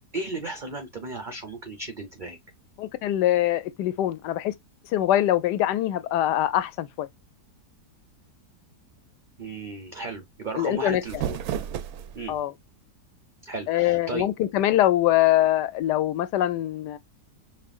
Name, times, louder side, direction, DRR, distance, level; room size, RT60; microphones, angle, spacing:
voice 1, 0.1-2.4 9.4-11.4 12.1-12.4 13.4-14.3, right 3 dB, 45° right, 0.6 m, -35 dB
voice 2, 2.8-4.5 4.9-7.1 10.6-11.0 12.3-12.5 13.7-17.0, left 13 dB, 85° left, 1.2 m, -23 dB
sound 1, 10.8-12.4, right 9 dB, 70° right, 1.0 m, -33 dB
5.4 x 2.4 x 2.4 m
omnidirectional pair, 1.8 m